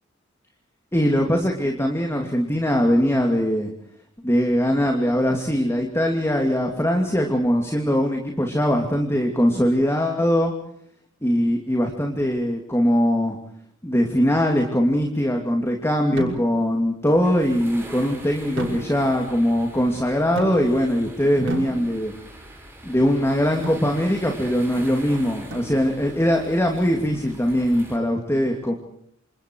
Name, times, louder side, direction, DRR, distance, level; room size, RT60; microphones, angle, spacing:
voice 1, 0.9-3.7 4.2-10.5 11.2-13.4 13.8-22.1 22.8-28.7, equal, 15° left, 2 dB, 2.8 m, -21 dB
sound 1, 16.2-16.8 18.6-19.3 20.4-21.0 21.5-22.3 23.6-24.0 25.5-26.1, right 1 dB, 65° right, 6.2 m, -34 dB
sound 2, 17.2-28.0, right 1 dB, 10° right, 6.5 m, -43 dB
28.0 x 27.5 x 4.8 m, 0.69 s
head